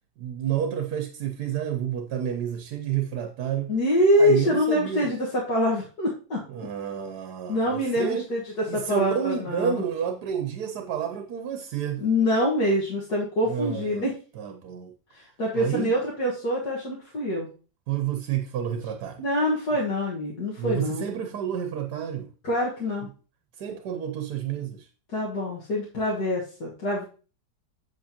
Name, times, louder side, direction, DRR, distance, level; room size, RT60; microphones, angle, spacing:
voice 1, 0.2-3.7 4.2-5.1 6.5-8.3 8.7-12.0 13.5-14.1 14.4-14.9 15.5-15.9 17.9-19.2 20.6-22.3 23.6-24.9, right 9 dB, 75° right, 1.3 m, -30 dB
voice 2, 3.7-6.4 7.5-8.4 8.7-9.8 12.0-14.1 15.1-17.5 19.2-21.1 22.4-23.1 25.1-27.0, left 1 dB, 70° left, 2.2 m, -25 dB
7.8 x 7.7 x 2.9 m
omnidirectional pair, 1.8 m